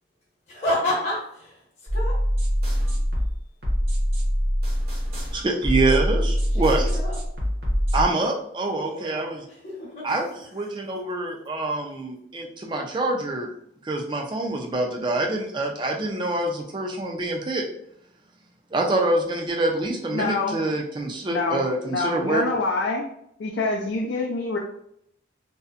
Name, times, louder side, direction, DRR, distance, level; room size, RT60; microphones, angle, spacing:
voice 1, 0.5-2.2 6.6-7.2 8.8-10.2, left 1 dB, 40° left, -6 dB, 0.9 m, -30 dB
sound 1, 1.9-8.0, equal, 55° right, 0.8 m, -24 dB
voice 2, 5.3-7.0 7.9-9.4 10.0-13.5 13.8-17.7 18.7-22.4, right 2 dB, 25° right, 2 dB, 0.3 m, -26 dB
voice 3, 20.1-20.6 21.3-23.0 23.4-24.6, left 3 dB, 75° left, -1 dB, 0.4 m, -26 dB
2.6 x 2.1 x 2.4 m, 0.72 s
head